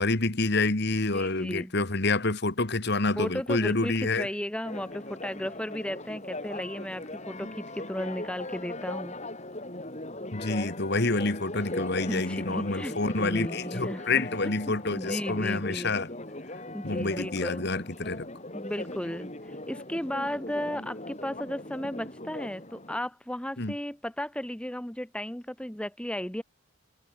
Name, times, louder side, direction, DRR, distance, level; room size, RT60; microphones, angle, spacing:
voice 1, 0.0-4.3 10.3-16.1 16.8-18.3 23.6-23.7, left 3 dB, 55° left, 1.9 m, -28 dB
voice 2, 1.1-1.7 3.2-9.2 12.0-16.0 16.7-17.6 18.5-26.4, equal, 5° left, 0.9 m, -35 dB
Church bell, 4.6-23.0, left 1 dB, 35° left, 5.8 m, -39 dB
head